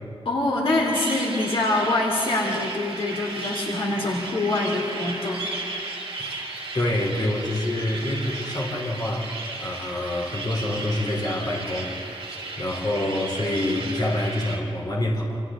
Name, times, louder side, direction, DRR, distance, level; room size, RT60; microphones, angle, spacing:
voice 1, 0.2-5.4, left 2 dB, 65° left, -2 dB, 3.0 m, -25 dB
sound 1, 0.9-14.6, right 2 dB, 65° right, 5.0 m, -34 dB
voice 2, 6.7-9.3 9.6-15.4, left 1 dB, 45° left, -1 dB, 3.5 m, -27 dB
28.0 x 28.0 x 3.8 m, 2.6 s
wide cardioid pair, 175°, 10 cm